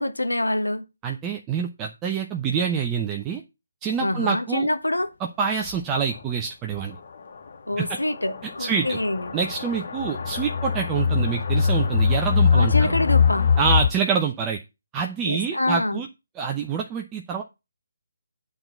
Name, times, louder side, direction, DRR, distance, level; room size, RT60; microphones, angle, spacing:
voice 1, 0.0-0.9 4.0-5.1 7.7-9.4 12.5-13.5 15.2-16.0, left 1 dB, 85° left, 1.2 m, -26 dB
voice 2, 1.0-3.4 3.8-4.7 5.2-7.0 7.8-8.0 8.6-9.0 9.3-12.9 13.6-14.6 14.9-16.1 16.4-17.4, right 6 dB, 15° right, 0.7 m, -26 dB
sound 1, 5.7-5.8 6.2-6.3 6.8-6.9 7.7-13.9, left 6 dB, 50° left, 1.1 m, -22 dB
8.9 x 4.0 x 6.9 m
figure-of-eight pair, 145°, 0 cm